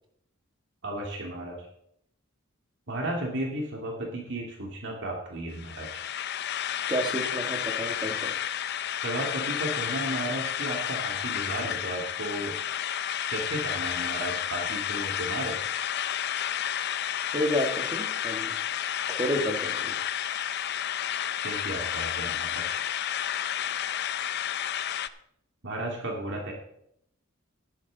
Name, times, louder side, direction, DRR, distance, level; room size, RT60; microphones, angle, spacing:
voice 1, 0.8-1.7 2.9-6.0 9.0-12.6 13.3-15.6 21.4-22.8 25.6-26.5, right 1 dB, 60° right, -1 dB, 2.4 m, -34 dB
sound 1, 5.5-25.1, left 10 dB, 50° left, 0.5 m, -31 dB
voice 2, 6.9-8.3 17.3-18.5 19.1-20.0, equal, 20° right, 3 dB, 1.6 m, -30 dB
12.5 x 10.5 x 4.0 m, 0.73 s
head